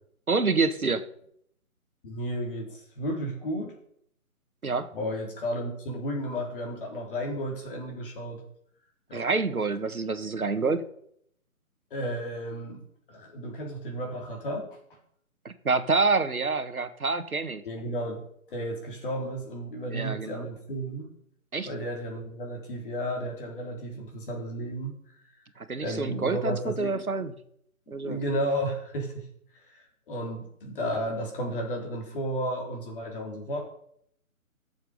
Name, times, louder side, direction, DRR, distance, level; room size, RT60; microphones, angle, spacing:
voice 1, 0.3-1.0 4.6-4.9 9.1-10.8 15.4-17.6 19.9-20.5 21.5-21.7 25.6-27.3 27.9-28.2, right 4 dB, 85° right, 10 dB, 1.6 m, -27 dB
voice 2, 2.0-3.7 4.9-8.4 9.1-9.3 11.9-12.8 13.1-15.0 17.6-18.2 18.5-21.1 21.6-24.9 25.8-27.0 27.9-29.3 29.7-33.6, equal, 40° left, 2 dB, 3.7 m, -33 dB
14.0 x 7.3 x 5.4 m, 0.69 s
figure-of-eight pair, 150°, 42 cm